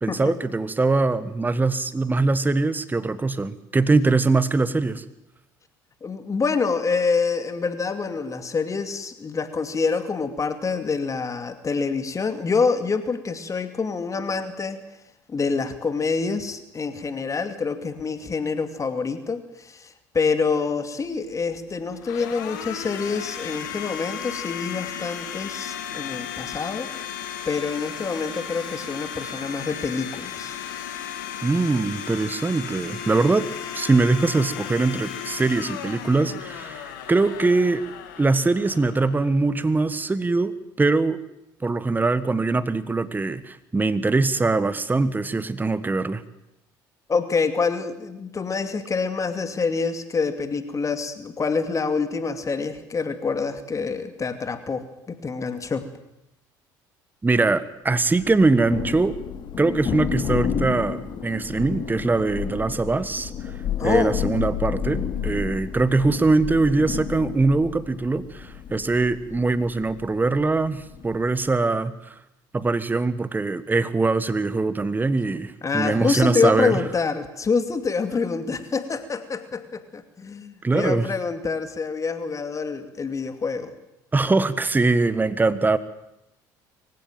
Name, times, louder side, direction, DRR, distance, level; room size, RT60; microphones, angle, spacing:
voice 1, 0.0-5.0 31.4-33.5 33.7-37.8 38.2-41.2 41.6-46.2 57.2-59.1 59.6-63.3 63.8-72.2 72.5-76.8 80.6-81.0 84.1-85.8, right 3 dB, 15° right, 15 dB, 1.4 m, -22 dB
voice 2, 6.0-14.8 15.3-27.2 27.4-30.5 47.1-55.8 63.8-64.2 75.6-83.7, left 4 dB, 30° left, 9 dB, 2.5 m, -26 dB
Domestic sounds home sounds, 21.0-39.9, left 9 dB, 80° left, 2.9 m, -35 dB
Thunder, 58.2-71.4, left 8 dB, 45° left, 3.3 m, -31 dB
24.5 x 16.0 x 9.2 m, 0.88 s
hypercardioid pair, 65°, 10 cm